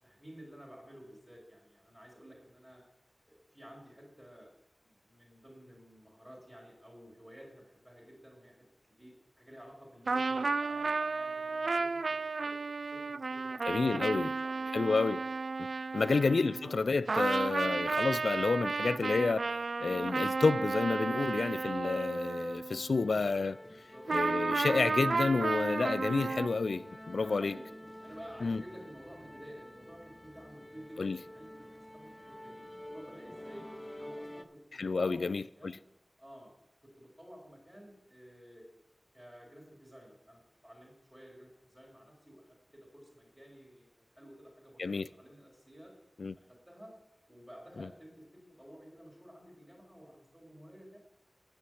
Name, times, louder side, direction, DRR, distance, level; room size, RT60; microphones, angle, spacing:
voice 1, 0.0-2.8 3.2-4.5 4.8-8.6 9.0-13.6 13.9-14.7 15.9-16.2 23.7-24.1 27.1-33.7 33.9-35.8 36.2-36.5 37.0-38.6 39.1-42.4 42.7-45.9 46.4-46.9 47.3-51.0, equal, 10° right, 3.8 m, -53 dB
sound 1, 10.1-16.8 17.1-23.0 24.1-26.5, right 4 dB, 80° right, 0.3 m, -33 dB
voice 2, 13.7-14.3 14.7-15.2 15.9-19.5 19.8-23.6 24.1-27.6 28.4-28.6 31.0-31.2 34.8-35.8 44.8-45.1 46.2-46.3 47.8-47.9, left 4 dB, 85° left, 0.3 m, -30 dB
sound 2, 22.9-34.4, left 1 dB, 20° left, 0.7 m, -48 dB
9.7 x 6.3 x 7.7 m
wide cardioid pair, 50°, 0 cm